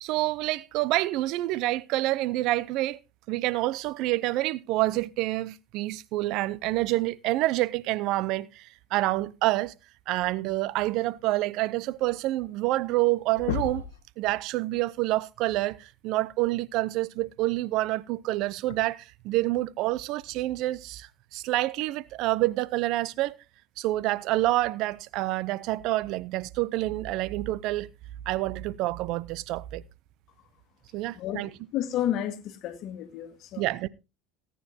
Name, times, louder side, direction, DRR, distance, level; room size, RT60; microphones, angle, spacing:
voice 1, 0.0-3.0 3.3-9.7 10.1-13.9 14.2-23.4 23.8-27.9 28.3-29.8 30.9-31.5 33.6-33.9, right 17 dB, 65° right, 0.6 m, -28 dB
sound 1, 12.5-12.6 12.8-13.1 13.4-14.0 15.7-15.8 17.7-17.8 18.7-18.8, left 8 dB, 85° left, 1.1 m, -32 dB
voice 2, 31.7-33.6, left 11 dB, 55° left, 1.9 m, -31 dB
18.5 x 9.3 x 2.8 m
hypercardioid pair, 85°, 0 cm